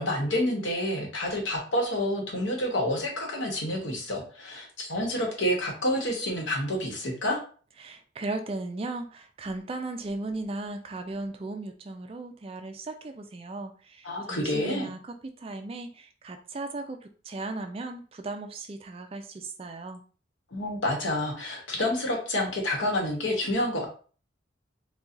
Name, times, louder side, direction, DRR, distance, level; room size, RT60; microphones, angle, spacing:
voice 1, 0.0-7.4 14.0-14.9 20.5-23.9, left 1 dB, 85° left, 0 dB, 1.1 m, -28 dB
voice 2, 7.8-20.0, right 2 dB, 30° right, 6 dB, 0.3 m, -36 dB
4.2 x 2.3 x 2.5 m, 0.40 s
head